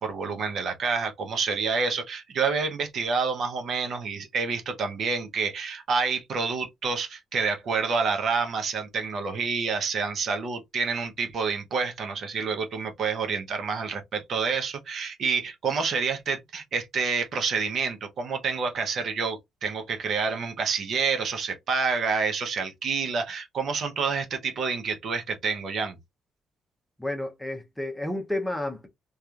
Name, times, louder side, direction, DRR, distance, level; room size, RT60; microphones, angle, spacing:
voice 1, 0.0-26.0, right 5 dB, 60° right, 0.8 m, -28 dB
voice 2, 27.0-28.9, left 1 dB, 5° left, 0.7 m, -31 dB
2.9 x 2.4 x 2.4 m
cardioid pair, 90°, 0 cm